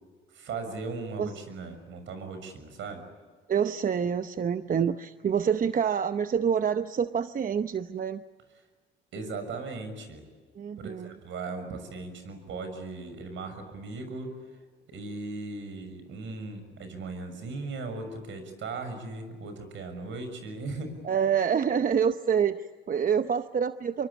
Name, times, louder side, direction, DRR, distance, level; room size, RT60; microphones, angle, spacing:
voice 1, 0.3-3.0 9.1-10.2 10.8-14.3 14.9-20.9, right 3 dB, 75° right, 8 dB, 6.6 m, -38 dB
voice 2, 3.5-8.2 10.5-11.1 21.0-24.1, right 7 dB, 45° right, 10 dB, 0.8 m, -27 dB
26.0 x 24.0 x 8.4 m, 1.5 s
cardioid pair, 90°, 20 cm